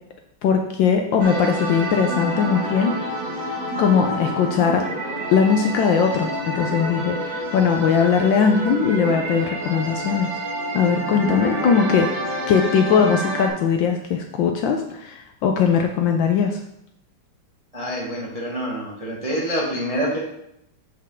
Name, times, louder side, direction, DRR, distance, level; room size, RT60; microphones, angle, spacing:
voice 1, 0.4-2.9 3.8-4.8 5.3-10.4 10.7-12.1 12.5-16.6, left 6 dB, 75° left, 4 dB, 1.2 m, -20 dB
sound 1, 1.2-13.5, right 1 dB, 45° right, 1.2 m, -28 dB
voice 2, 17.7-20.2, equal, 30° right, -4 dB, 0.7 m, -26 dB
7.6 x 4.4 x 3.6 m, 0.78 s
omnidirectional pair, 2.4 m